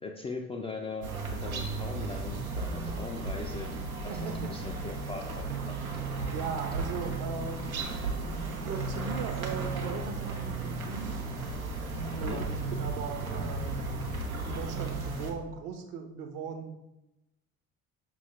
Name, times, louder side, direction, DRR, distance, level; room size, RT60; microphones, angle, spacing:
voice 1, 0.0-3.7 4.0-5.8 12.1-12.4, left 3 dB, 15° left, 1 dB, 0.3 m, -40 dB
sound 1, 1.0-15.3, right 3 dB, 90° right, 0.5 m, -34 dB
voice 2, 4.1-4.5 6.3-7.9 8.2-11.1 12.1-13.7 14.3-16.8, right 6 dB, 50° right, 5 dB, 0.7 m, -39 dB
5.4 x 2.5 x 3.2 m, 0.88 s
figure-of-eight pair, 50°, 41 cm